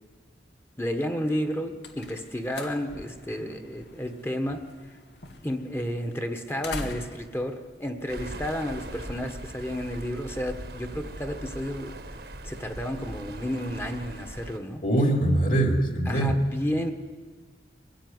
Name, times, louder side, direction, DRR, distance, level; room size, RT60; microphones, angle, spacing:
voice 1, 0.8-5.0 5.4-12.2 12.4-14.8 16.1-16.9, equal, 15° left, 6 dB, 1.4 m, -32 dB
sound 1, 1.5-8.8, left 2 dB, 80° left, 2.2 m, -44 dB
sound 2, 8.1-14.6, right 1 dB, 65° right, 1.5 m, -40 dB
voice 2, 14.8-16.3, right 1 dB, 50° left, 3 dB, 3.3 m, -23 dB
22.5 x 15.5 x 9.6 m, 1.5 s
head